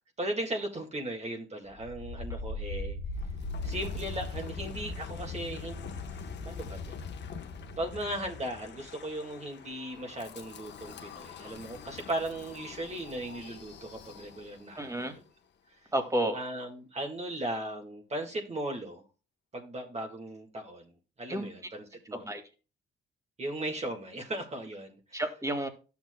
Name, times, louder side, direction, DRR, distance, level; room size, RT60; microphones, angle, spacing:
voice 1, 0.2-3.0 3.6-5.8 6.4-7.0 7.8-15.2 16.3-19.0 19.5-20.9 21.2-22.2 23.4-25.2, right 1 dB, 35° right, 2 dB, 1.7 m, -37 dB
Wind, 1.7-14.7, left 3 dB, 60° left, 1.1 m, -41 dB
voice 2, 14.8-15.1 15.9-16.4 21.3-21.5 22.1-22.4 25.1-25.7, right 1 dB, 15° right, 6 dB, 1.9 m, -31 dB
12.0 x 7.2 x 2.2 m, 0.34 s
cardioid pair, 90°, 20 cm